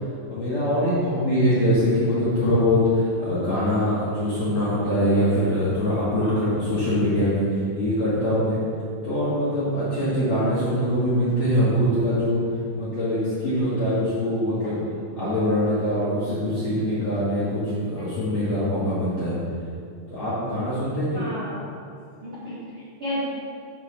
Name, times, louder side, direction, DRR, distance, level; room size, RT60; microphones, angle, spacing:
voice 1, 0.3-8.6 9.0-12.4 12.7-14.8 15.1-19.4 20.1-21.2, equal, 65° left, -11 dB, 1.7 m, -23 dB
voice 2, 6.2-6.5 21.1-21.6 22.2-23.2, left 1 dB, 90° right, -10 dB, 1.1 m, -33 dB
7.9 x 4.1 x 6.4 m, 2.4 s
omnidirectional pair, 5.3 m